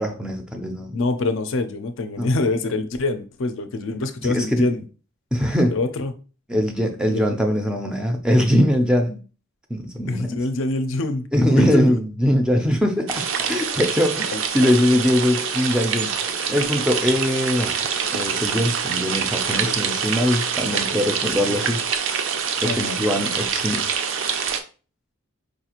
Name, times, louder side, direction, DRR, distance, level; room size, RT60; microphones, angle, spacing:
voice 1, 0.0-1.0 2.2-2.4 4.2-4.7 5.3-5.7 6.5-9.2 9.7-10.4 11.3-16.1 16.5-17.8 18.1-21.8 22.6-23.8, equal, 5° right, 3 dB, 0.4 m, -21 dB
voice 2, 0.9-4.8 5.7-6.1 7.1-7.2 10.1-12.0 14.3-14.4 19.5-20.0 21.3-21.5 22.6-23.0, left 2 dB, 60° left, 9 dB, 0.4 m, -25 dB
sound 1, 13.1-24.6, right 6 dB, 60° right, 0.4 m, -25 dB
4.7 x 2.4 x 2.9 m, 0.36 s
head